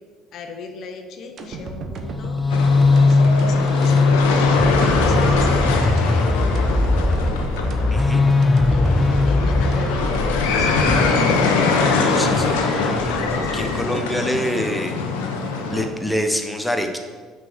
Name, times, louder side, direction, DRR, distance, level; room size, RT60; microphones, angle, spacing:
voice 1, 0.3-4.2 5.0-6.8 8.7-11.6 13.4-13.6, left 5 dB, 60° left, 5 dB, 0.8 m, -37 dB
sound 1, 1.4-13.6 14.0-14.1, right 3 dB, 55° right, 0.9 m, -34 dB
sound 2, 2.0-13.9, left 3 dB, 20° left, 0.5 m, -20 dB
sound 3, 2.5-15.9, left 4 dB, 85° left, 0.9 m, -23 dB
voice 2, 7.9-8.2 11.7-12.6 13.5-15.0 15.7-17.0, equal, ahead, 4 dB, 0.9 m, -25 dB
6.0 x 4.6 x 6.4 m, 1.5 s
supercardioid pair, 75°, 0 cm